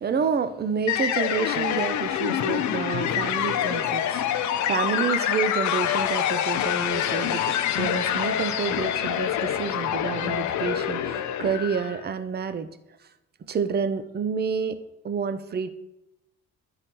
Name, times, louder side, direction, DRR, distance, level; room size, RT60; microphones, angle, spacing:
voice 1, 0.0-12.7 13.5-14.8 15.0-15.7, right 6 dB, 35° right, 11 dB, 0.5 m, -29 dB
sound 1, 0.9-12.0, left 10 dB, 70° left, 0.6 m, -26 dB
11.0 x 4.8 x 3.0 m, 0.89 s
cardioid pair, 90°, 30 cm